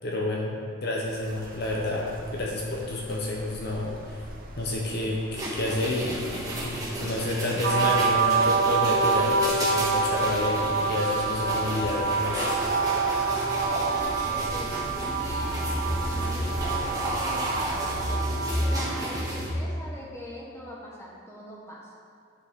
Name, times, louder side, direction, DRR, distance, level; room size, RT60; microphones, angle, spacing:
voice 1, 0.0-4.3 4.6-12.5, left 2 dB, 50° left, -2 dB, 1.0 m, -30 dB
sound 1, 1.1-18.1, right 1 dB, 45° right, 0.8 m, -44 dB
sound 2, 5.3-19.5, right 1 dB, 15° right, 1.4 m, -32 dB
sound 3, 7.6-19.2, right 4 dB, 65° right, 1.5 m, -27 dB
voice 2, 13.6-14.8 15.2-17.4 18.1-21.9, equal, 15° left, -4 dB, 1.4 m, -42 dB
9.7 x 6.6 x 3.7 m, 2.2 s
head